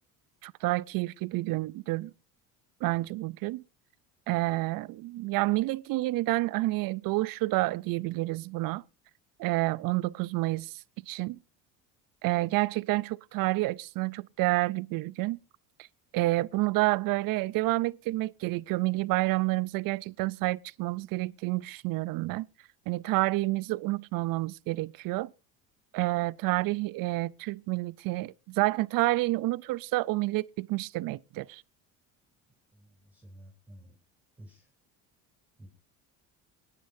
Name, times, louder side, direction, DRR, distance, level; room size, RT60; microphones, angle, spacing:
voice 1, 0.4-2.1 2.8-3.6 4.3-8.8 9.4-10.7 11.1-11.4 12.2-15.4 16.1-22.5 22.9-25.3 25.9-31.6, right 20 dB, 60° right, 0.5 m, -29 dB
voice 2, 32.4-34.0 34.4-34.7 35.6-35.7, equal, 5° right, 3.4 m, -52 dB
23.0 x 10.0 x 2.6 m
supercardioid pair, 90°, 38 cm